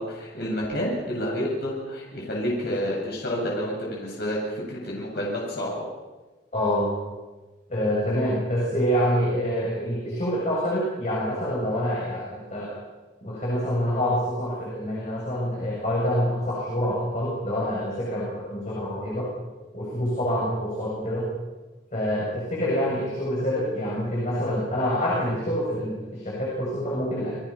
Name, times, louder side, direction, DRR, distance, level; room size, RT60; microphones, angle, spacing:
voice 1, 0.0-5.8, equal, 60° left, -3 dB, 8.0 m, -29 dB
voice 2, 6.5-7.0 7.7-12.8 13.2-19.3 19.7-21.3 21.9-27.4, equal, 40° left, -4 dB, 7.3 m, -26 dB
29.5 x 22.5 x 5.9 m, 1.2 s
head